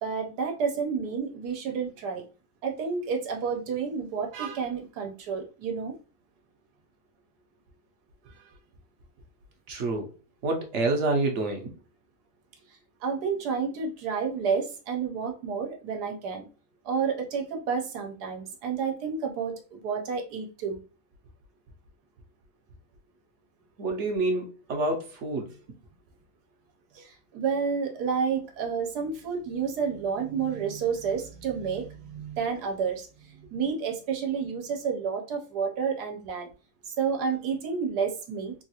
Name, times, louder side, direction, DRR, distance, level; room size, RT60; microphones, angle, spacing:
voice 1, 0.0-2.2 2.6-5.9 13.0-16.5 16.8-20.8 26.9-33.1 33.3-36.5 37.0-38.5, right 6 dB, 85° right, 1.3 m, -30 dB
voice 2, 9.7-10.1 10.4-11.7 23.8-25.5, right 2 dB, 55° right, 0.9 m, -28 dB
3.6 x 2.3 x 2.8 m
omnidirectional pair, 1.7 m